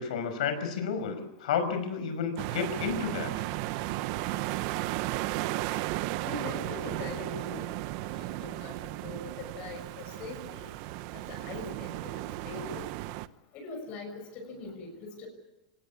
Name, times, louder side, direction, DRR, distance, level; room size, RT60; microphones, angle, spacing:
voice 1, 0.0-3.3, left 6 dB, 75° left, 9 dB, 5.5 m, -31 dB
sound 1, 2.4-13.3, right 16 dB, 45° right, 0.9 m, -35 dB
voice 2, 6.2-7.7 8.1-8.7 9.0-10.6 11.1-12.9 13.5-15.3, left 3 dB, 35° left, 3 dB, 6.2 m, -42 dB
25.0 x 18.5 x 8.6 m, 1.0 s
supercardioid pair, 160°, 4 cm